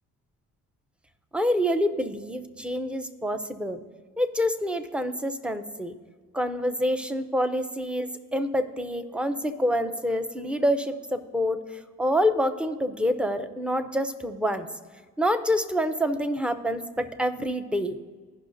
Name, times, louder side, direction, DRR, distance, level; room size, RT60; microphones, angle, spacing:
voice 1, 1.3-3.8 4.2-5.9 6.3-14.7 15.2-18.0, equal, 5° right, 10 dB, 0.6 m, -27 dB
16.0 x 5.6 x 2.6 m, 1.5 s
cardioid pair, 90°, 30 cm